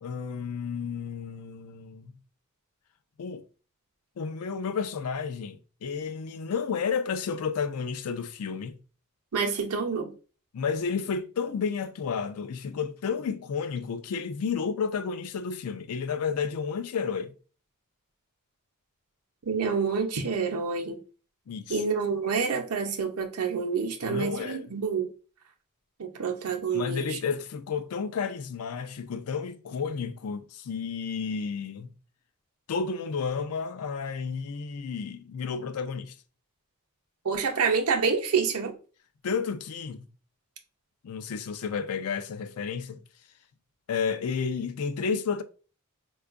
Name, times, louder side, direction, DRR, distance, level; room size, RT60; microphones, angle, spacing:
voice 1, 0.0-2.1 3.2-3.4 4.2-8.8 10.5-17.3 21.5-21.8 24.0-24.6 26.7-31.9 32.7-36.1 39.2-40.1 41.0-43.0 43.9-45.4, left 6 dB, 75° left, 0.4 m, -31 dB
voice 2, 9.3-10.1 19.5-21.0 21.7-25.1 26.0-27.2 37.2-38.8, right 5 dB, 80° right, 0.6 m, -28 dB
4.5 x 2.3 x 2.4 m
head